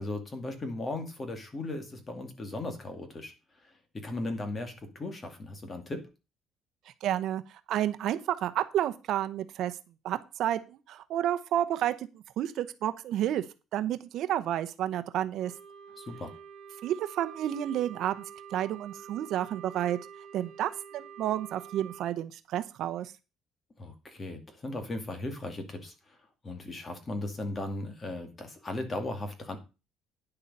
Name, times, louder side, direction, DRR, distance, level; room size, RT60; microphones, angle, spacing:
voice 1, 0.0-3.3 3.6-6.1 16.0-16.3 23.8-26.2 26.4-29.6, left 2 dB, 25° left, 7 dB, 2.2 m, -37 dB
voice 2, 7.0-9.8 10.0-13.4 13.7-15.5 16.8-18.2 18.5-20.0 20.3-23.1, right 11 dB, 60° right, 11 dB, 0.8 m, -30 dB
Wind instrument woodwind instrument, 15.4-22.1, right 8 dB, 35° right, 3.7 m, -47 dB
10.0 x 6.9 x 5.4 m, 0.29 s
cardioid pair, 155°, 0 cm